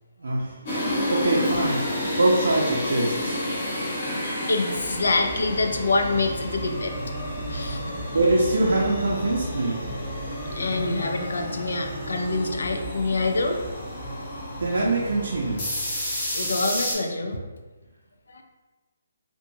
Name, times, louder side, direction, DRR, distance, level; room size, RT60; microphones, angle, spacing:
voice 1, 0.2-0.6 1.1-1.8 2.2-3.4 8.1-9.8 14.6-15.6, right 2 dB, 80° right, -4 dB, 0.5 m, -23 dB
sound 1, 0.7-16.9, left 1 dB, 30° left, 0.7 m, -30 dB
voice 2, 3.9-6.9 7.5-7.8 10.5-13.6 16.3-17.4 18.3-18.4, left 3 dB, 85° left, 4 dB, 0.4 m, -26 dB
2.8 x 2.2 x 2.6 m, 1.2 s
hypercardioid pair, 175°, 0 cm